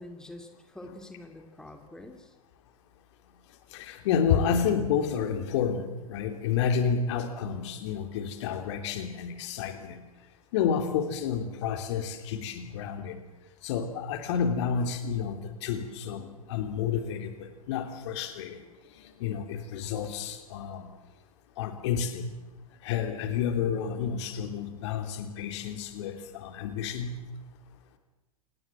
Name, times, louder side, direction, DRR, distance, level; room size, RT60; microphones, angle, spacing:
voice 1, 0.0-2.4, left 1 dB, 5° left, 5 dB, 2.9 m, -46 dB
voice 2, 3.7-10.0 10.5-13.2 13.6-18.6 19.2-20.9 21.6-22.3 22.8-27.1, left 7 dB, 50° left, 7 dB, 3.1 m, -30 dB
28.0 x 19.0 x 7.5 m, 1.1 s
figure-of-eight pair, 100°, 19 cm